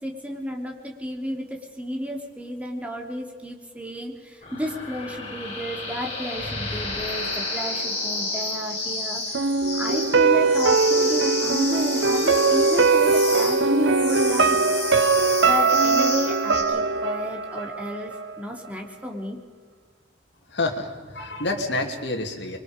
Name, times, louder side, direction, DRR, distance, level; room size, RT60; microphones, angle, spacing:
voice 1, 0.0-14.6 14.9-15.0 15.4-19.4, left 1 dB, 10° right, 1 dB, 3.0 m, -32 dB
sound 1, 4.4-16.6, left 3 dB, 40° left, 7.2 m, -31 dB
sound 2, 9.3-18.3 18.6-18.7, right 4 dB, 75° right, 0.8 m, -21 dB
voice 2, 20.5-22.6, left 2 dB, 70° left, 3 dB, 2.8 m, -28 dB
25.5 x 23.5 x 5.2 m, 1.5 s
head